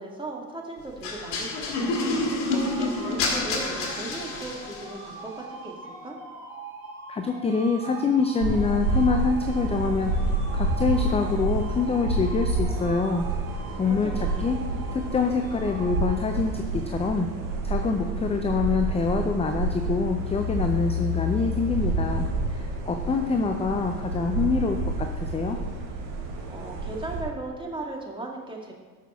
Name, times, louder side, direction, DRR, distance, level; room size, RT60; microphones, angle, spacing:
voice 1, 0.0-6.2 13.8-14.4 26.5-28.7, right 2 dB, 10° right, -1 dB, 2.0 m, -37 dB
sound 1, 1.0-5.0, left 2 dB, 55° left, 2.4 m, -28 dB
sound 2, 1.5-16.8, right 3 dB, 45° right, 3.1 m, -42 dB
voice 2, 7.1-10.2 10.5-13.2 13.8-14.6 14.9-17.3 17.6-22.3 22.5-25.6, left 4 dB, 15° left, 5 dB, 0.5 m, -25 dB
sound 3, 8.4-27.2, right 1 dB, 75° right, 2.7 m, -29 dB
13.0 x 5.9 x 3.6 m, 1.4 s
hypercardioid pair, 85°, 50 cm